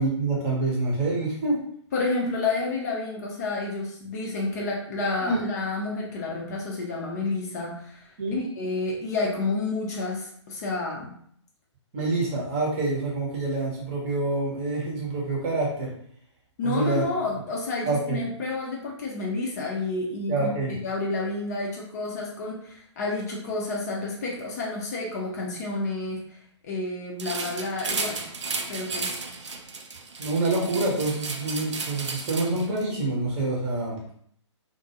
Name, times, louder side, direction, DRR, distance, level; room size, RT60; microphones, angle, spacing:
voice 1, 0.0-1.6 5.2-5.4 8.2-8.4 11.9-15.9 16.6-17.0 17.8-18.2 20.3-20.7 30.2-34.1, right 2 dB, 25° right, -3 dB, 0.7 m, -26 dB
voice 2, 1.9-8.1 8.4-11.1 16.6-26.4 26.6-28.2 28.7-29.1, left 3 dB, 35° left, -2 dB, 0.5 m, -30 dB
sound 1, 27.2-32.8, right 4 dB, 70° right, 0.4 m, -34 dB
2.4 x 2.2 x 2.8 m, 0.65 s
figure-of-eight pair, 130°, 16 cm